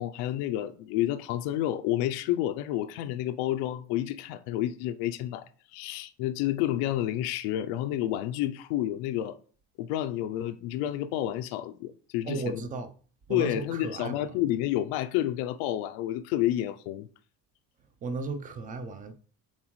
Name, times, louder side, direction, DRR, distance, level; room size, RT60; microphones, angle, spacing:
voice 1, 0.0-5.5 5.7-9.4 9.8-12.6 13.3-17.1, left 13 dB, 90° left, 0.5 m, -30 dB
voice 2, 12.2-12.9 13.3-14.4 18.0-19.1, right 3 dB, 25° right, 0.5 m, -35 dB
7.3 x 4.3 x 3.1 m
cardioid pair, 165°, 36 cm